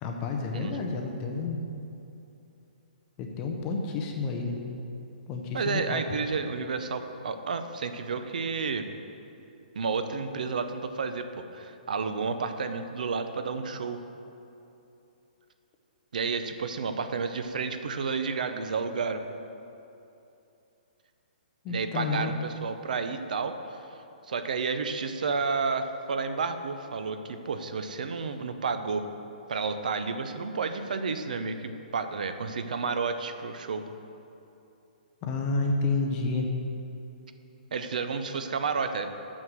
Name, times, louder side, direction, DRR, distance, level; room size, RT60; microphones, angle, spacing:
voice 1, 0.0-1.6 3.2-4.6 5.3-6.0 21.6-22.3 35.2-36.5, left 3 dB, 15° left, 2 dB, 0.5 m, -30 dB
voice 2, 5.5-8.9 9.7-14.0 16.1-19.2 21.7-23.8 24.3-29.1 29.5-33.8 37.7-39.1, right 4 dB, 60° right, 9 dB, 0.6 m, -31 dB
6.2 x 6.2 x 7.3 m, 2.8 s
hypercardioid pair, 180°, 5 cm